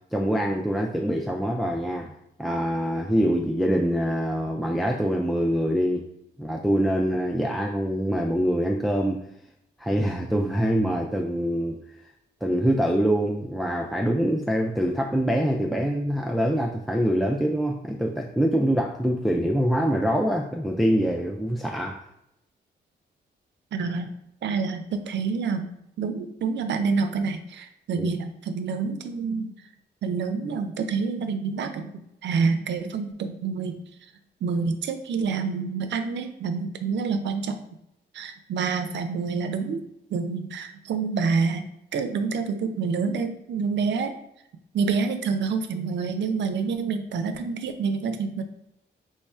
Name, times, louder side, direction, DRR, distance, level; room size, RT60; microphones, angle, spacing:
voice 1, 0.1-6.1 6.4-9.2 9.8-11.8 12.4-22.0 28.0-28.1, equal, ahead, 0 dB, 0.3 m, -24 dB
voice 2, 23.7-24.1 24.4-25.7 26.0-29.5 30.0-31.9 32.2-33.8 34.4-37.6 38.1-39.8 40.1-41.7 41.9-44.1 44.7-48.4, right 5 dB, 75° right, 8 dB, 0.5 m, -27 dB
3.1 x 2.3 x 4.2 m, 0.81 s
cardioid pair, 90°, 19 cm